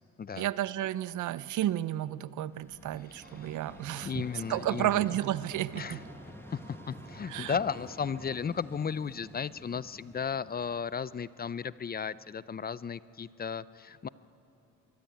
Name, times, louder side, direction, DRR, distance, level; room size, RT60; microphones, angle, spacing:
voice 1, 0.4-4.1 4.5-6.0 7.3-7.6, right 13 dB, 75° right, 17 dB, 0.7 m, -32 dB
Vehicle, 2.4-11.4, left 1 dB, 5° left, 1.3 m, -50 dB
voice 2, 3.1-3.6 4.0-5.2 5.8-6.0 6.5-14.1, left 6 dB, 30° left, 17 dB, 0.6 m, -35 dB
sound 1, 3.2-8.4, right 6 dB, 50° right, 2.1 m, -55 dB
23.5 x 23.0 x 9.3 m, 2.9 s
cardioid pair, 90°, 30 cm